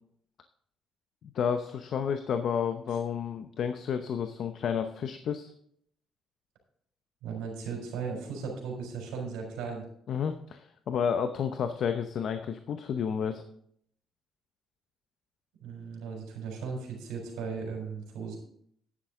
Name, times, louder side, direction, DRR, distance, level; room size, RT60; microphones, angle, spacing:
voice 1, 1.2-5.5 10.1-13.4, left 7 dB, 65° left, 8 dB, 0.8 m, -31 dB
voice 2, 7.2-9.8 15.6-18.4, right 5 dB, 80° right, 0 dB, 3.9 m, -37 dB
10.0 x 10.0 x 3.7 m, 0.67 s
supercardioid pair, 65°, 0 cm